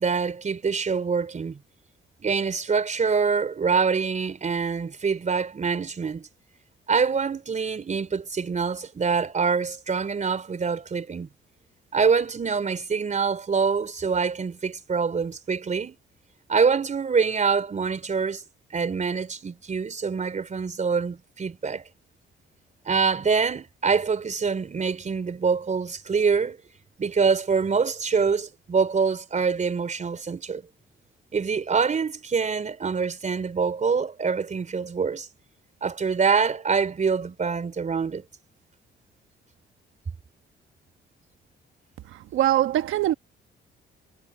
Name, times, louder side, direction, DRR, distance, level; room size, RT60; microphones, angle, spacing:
voice 1, 0.0-1.6 2.2-6.3 6.9-11.3 11.9-16.0 16.5-18.4 18.7-21.8 22.9-26.6 27.0-30.7 31.3-35.3 35.8-38.2, right 5 dB, 40° right, 4.1 m, -25 dB
voice 2, 42.3-43.1, right 13 dB, 85° right, 1.2 m, -22 dB
cardioid pair, 90°, 20 cm